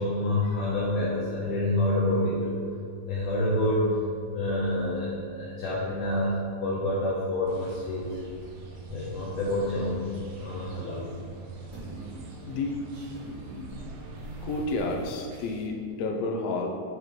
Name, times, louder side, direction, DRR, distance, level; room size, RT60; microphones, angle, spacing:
voice 1, 0.0-2.6 3.1-4.0 4.3-6.4 6.6-8.2 8.9-10.1 10.4-11.0, left 1 dB, 70° left, -6 dB, 1.7 m, -27 dB
sound 1, 7.5-15.0, right 3 dB, 80° right, 2.3 m, -44 dB
sound 2, 9.6-11.3 11.6-15.7, right 2 dB, 60° right, 1.0 m, -45 dB
voice 2, 12.5-12.8 14.4-16.7, left 2 dB, 85° left, 2 dB, 1.5 m, -30 dB
6.8 x 4.8 x 3.1 m, 2.3 s
omnidirectional pair, 3.5 m